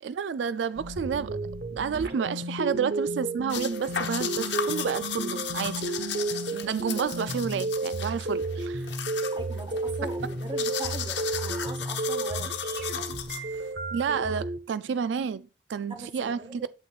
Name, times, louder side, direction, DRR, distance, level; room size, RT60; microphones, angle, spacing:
voice 1, 0.0-1.4 1.7-5.9 6.5-8.9 13.9-16.6, right 6 dB, 80° right, 0.3 m, -30 dB
sound 1, 0.8-14.6, right 2 dB, 60° right, 1.1 m, -32 dB
sound 2, 3.5-13.7, left 9 dB, 75° left, 1.1 m, -36 dB
voice 2, 9.0-12.5 13.1-13.2 15.9-16.7, right 1 dB, 25° right, 1.0 m, -41 dB
8.4 x 8.3 x 2.4 m
head